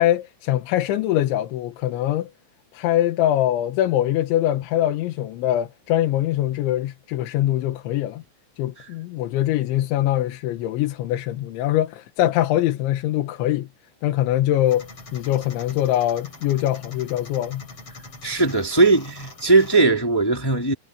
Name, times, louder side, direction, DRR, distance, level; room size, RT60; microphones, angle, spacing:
voice 1, 0.0-2.3 2.7-8.2 8.6-13.7 14.0-17.6, left 13 dB, 90° left, 3.7 m, -23 dB
sound 1, 14.7-19.8, left 3 dB, 30° left, 8.1 m, -43 dB
voice 2, 18.2-20.7, right 3 dB, 10° left, 1.0 m, -18 dB
omnidirectional pair, 5.2 m